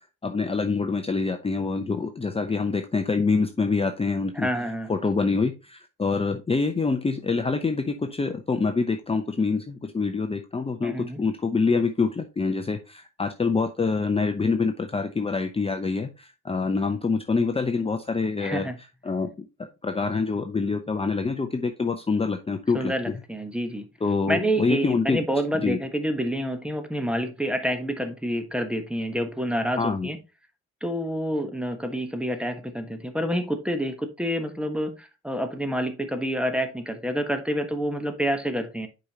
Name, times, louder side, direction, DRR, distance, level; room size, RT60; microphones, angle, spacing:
voice 1, 0.2-4.5 4.9-18.7 19.0-19.5 19.8-23.2 24.0-25.2 25.5-25.8 29.8-30.1, left 4 dB, 20° left, 0.7 m, -26 dB
voice 2, 4.3-4.9 10.8-11.2 18.4-18.8 22.7-23.9 24.3-30.2 30.8-38.9, equal, 5° right, 1.1 m, -28 dB
7.7 x 5.2 x 2.9 m
cardioid pair, 90°, 30 cm